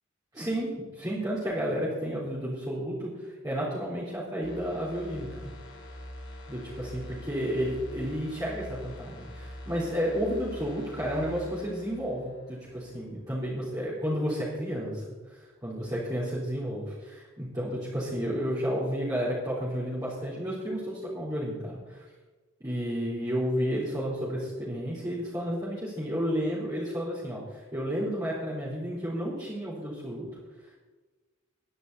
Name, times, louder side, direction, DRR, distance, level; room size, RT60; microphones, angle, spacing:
voice 1, 0.3-5.5 6.5-22.0 22.6-30.3, equal, 20° right, -9 dB, 3.9 m, -32 dB
sound 1, 4.4-13.1 13.4-13.6, left 1 dB, 60° left, 2.8 m, -44 dB
21.5 x 10.5 x 4.2 m, 1.3 s
head